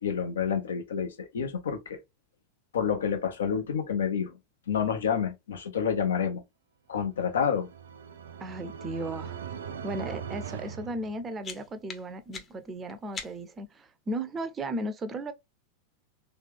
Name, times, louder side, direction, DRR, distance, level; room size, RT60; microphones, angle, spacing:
voice 1, 0.0-2.0 2.7-4.4 4.7-6.4 6.9-7.7, left 7 dB, 65° left, 1.0 m, -28 dB
sound 1, 7.2-11.7, right 7 dB, 65° right, 0.5 m, -40 dB
voice 2, 8.4-9.4 9.8-15.3, right 1 dB, 20° right, 0.6 m, -35 dB
sound 2, 11.0-13.7, left 5 dB, 25° left, 0.9 m, -44 dB
3.5 x 3.3 x 3.5 m
figure-of-eight pair, 90°, 0 cm